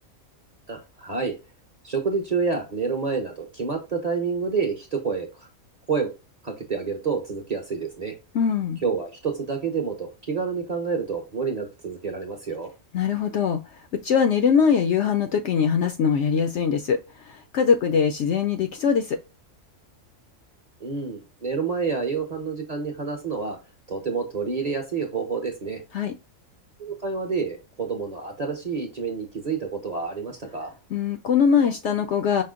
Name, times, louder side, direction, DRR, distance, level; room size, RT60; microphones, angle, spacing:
voice 1, 0.7-1.3 1.8-5.5 5.9-6.1 6.4-8.1 8.8-12.7 20.8-23.6 23.9-25.8 26.8-30.7, right 5 dB, 35° right, 2 dB, 0.8 m, -28 dB
voice 2, 8.3-8.8 12.9-13.6 14.0-17.0 17.2-19.2 25.9-26.1 30.9-32.4, left 6 dB, 65° left, 6 dB, 0.7 m, -22 dB
5.5 x 2.1 x 3.6 m, 0.27 s
omnidirectional pair, 1.5 m